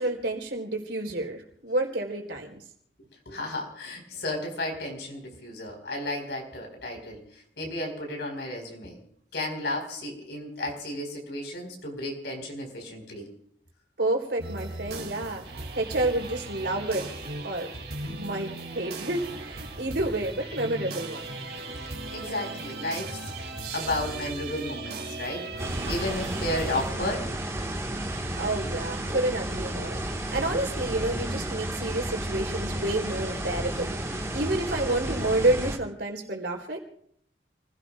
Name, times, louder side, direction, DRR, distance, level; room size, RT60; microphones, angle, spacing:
voice 1, 0.0-2.6 14.0-15.4 15.7-17.1 17.4-17.7 18.1-21.2 28.4-34.0 34.3-36.8, right 2 dB, 80° right, 1 dB, 3.8 m, -29 dB
voice 2, 3.3-7.2 7.6-9.0 9.3-13.3 22.1-23.2 23.7-27.3, left 1 dB, 75° left, 2 dB, 4.7 m, -33 dB
sound 1, 14.4-26.9, right 2 dB, 60° right, 2.5 m, -37 dB
sound 2, 25.6-35.8, right 1 dB, 15° right, 1.6 m, -32 dB
29.5 x 17.0 x 2.4 m, 0.68 s
head